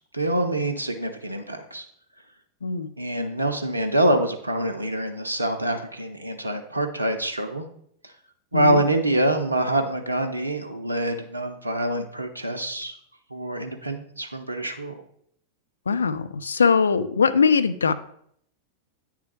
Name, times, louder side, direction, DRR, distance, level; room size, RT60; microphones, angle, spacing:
voice 1, 0.1-1.8 3.0-7.7 8.0-8.1 8.5-13.0 13.3-15.0, right 1 dB, 85° right, 6 dB, 0.5 m, -25 dB
voice 2, 15.9-17.9, left 5 dB, 70° left, 11 dB, 0.3 m, -21 dB
8.9 x 3.4 x 3.2 m, 0.67 s
figure-of-eight pair, 90°, 0 cm